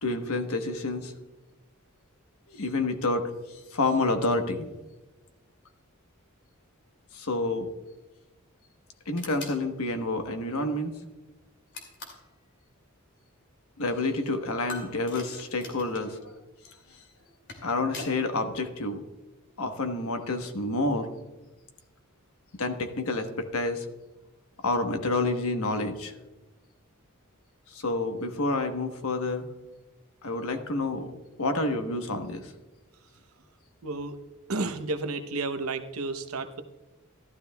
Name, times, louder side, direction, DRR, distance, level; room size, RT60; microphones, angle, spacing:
voice 1, 0.0-1.1 2.5-3.3 3.7-4.7 7.1-7.7 9.1-11.0 13.8-16.3 17.6-19.0 19.6-21.1 22.6-23.9 24.6-26.1 27.7-29.5 30.2-31.1 31.4-32.5, left 2 dB, 90° left, 6 dB, 1.2 m, -29 dB
sound 1, 9.2-9.6 11.7-12.3 14.7-16.1 17.2-18.2, left 3 dB, 60° left, 2.6 m, -42 dB
voice 2, 33.8-34.2 34.5-36.6, right 3 dB, 90° right, 8 dB, 0.8 m, -31 dB
14.5 x 12.5 x 2.3 m, 1.1 s
head